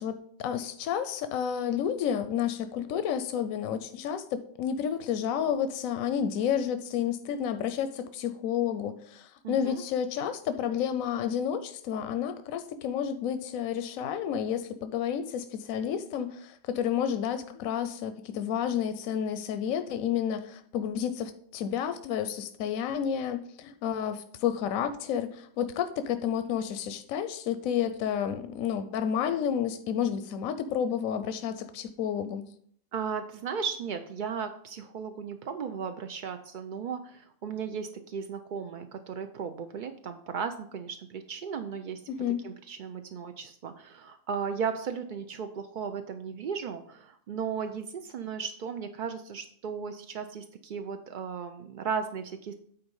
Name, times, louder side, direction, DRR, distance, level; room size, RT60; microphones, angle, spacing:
voice 1, 0.0-32.4 42.1-42.4, left 8 dB, 80° left, 10 dB, 1.0 m, -30 dB
voice 2, 9.4-9.8 32.9-42.0 42.4-52.5, right 6 dB, 65° right, 7 dB, 0.4 m, -36 dB
9.5 x 4.1 x 5.3 m, 0.62 s
omnidirectional pair, 1.4 m